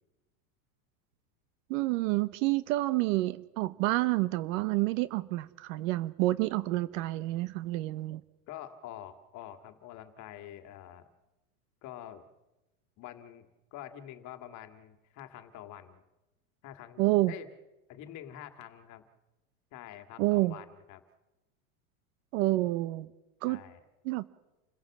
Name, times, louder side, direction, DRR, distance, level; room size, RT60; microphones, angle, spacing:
voice 1, 1.7-8.2 17.0-17.3 20.2-20.6 22.3-23.1 23.4-23.7 24.0-24.2, right 18 dB, 65° right, 15 dB, 1.0 m, -28 dB
voice 2, 8.5-11.1 11.8-12.3 13.0-16.0 16.6-17.5 17.9-19.0 19.7-21.0 23.5-23.8, left 11 dB, 40° left, 8 dB, 2.1 m, -46 dB
28.5 x 16.0 x 7.3 m, 1.0 s
supercardioid pair, 150°, 43 cm